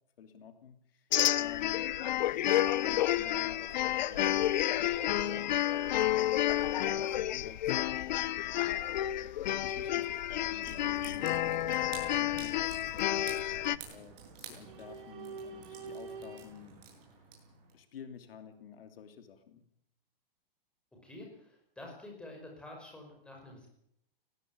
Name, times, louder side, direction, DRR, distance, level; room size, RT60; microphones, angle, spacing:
voice 1, 0.2-1.9 2.8-13.2 13.8-16.8 17.7-19.7, left 8 dB, 70° left, 8 dB, 3.0 m, -52 dB
sound 1, 1.1-13.8, left 13 dB, 50° left, 0.8 m, -30 dB
sound 2, 3.9-10.1 10.3-11.9 13.8-14.1 14.4-16.4, right 4 dB, 60° right, 6.6 m, -49 dB
sound 3, 10.6-17.7, right 6 dB, 40° right, 7.7 m, -50 dB
voice 2, 21.0-23.7, left 2 dB, 5° left, 0 dB, 5.3 m, -48 dB
19.5 x 17.0 x 9.6 m, 0.73 s
hypercardioid pair, 170°, 29 cm